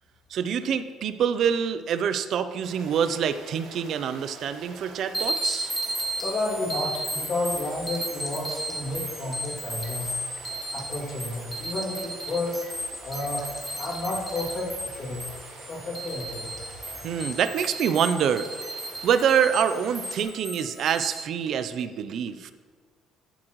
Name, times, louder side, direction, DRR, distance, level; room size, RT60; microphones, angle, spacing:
voice 1, 0.3-5.7 17.0-18.5 19.0-22.5, right 8 dB, 45° right, 11 dB, 0.5 m, -26 dB
Stream, 2.6-20.2, right 3 dB, 60° right, 1.5 m, -46 dB
sound 1, 5.1-21.1, right 1 dB, ahead, 1.4 m, -34 dB
voice 2, 6.2-10.1 10.7-12.6 13.0-13.4 13.8-15.2 15.7-16.5 20.2-20.6, left 2 dB, 35° left, -4 dB, 2.5 m, -31 dB
14.0 x 7.7 x 3.1 m, 1.5 s
cardioid pair, 175°, 0 cm